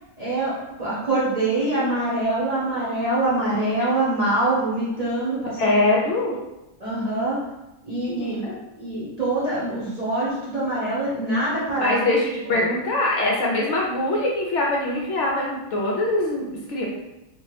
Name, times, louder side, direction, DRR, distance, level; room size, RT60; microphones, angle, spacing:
voice 1, 0.2-5.7 6.8-7.4 7.8-8.4 8.8-12.0 12.5-12.7, right 2 dB, 35° right, -9 dB, 0.7 m, -24 dB
voice 2, 5.6-6.4 8.0-8.6 11.8-16.9, left 2 dB, 65° left, -2 dB, 0.8 m, -23 dB
2.7 x 2.5 x 3.2 m, 0.96 s
omnidirectional pair, 1.4 m